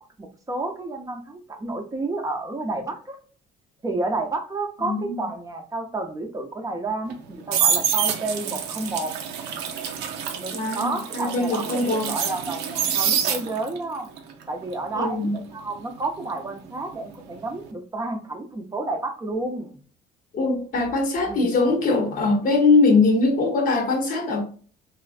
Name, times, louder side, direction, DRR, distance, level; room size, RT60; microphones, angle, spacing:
voice 1, 0.2-3.2 3.8-9.1 10.3-14.1 14.5-19.7 21.3-21.6, right 2 dB, 20° right, 0.5 m, -30 dB
voice 2, 4.8-5.2 10.5-12.1 14.9-15.3 20.3-24.4, left 3 dB, 55° left, 0.8 m, -21 dB
sound 1, 7.1-13.8 14.2-17.1 17.3-17.7, right 8 dB, 85° right, 0.5 m, -27 dB
3.1 x 2.4 x 2.4 m
cardioid pair, 110°, 17 cm